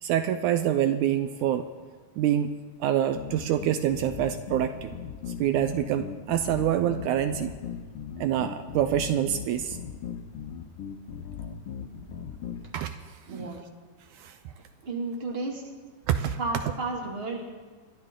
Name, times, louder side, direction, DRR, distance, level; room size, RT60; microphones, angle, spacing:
voice 1, 0.0-1.7 2.2-4.9 5.4-7.5 8.2-9.8 12.7-13.6 14.1-14.5 16.1-16.4 16.6-16.7, right 10 dB, 80° right, 9 dB, 2.0 m, -26 dB
sound 1, 3.1-12.6, left 7 dB, 65° left, 1.5 m, -38 dB
voice 2, 13.3-13.6 14.9-15.6 16.4-17.4, right 3 dB, 20° right, -1 dB, 2.2 m, -32 dB
29.5 x 11.0 x 3.8 m, 1.4 s
omnidirectional pair, 3.6 m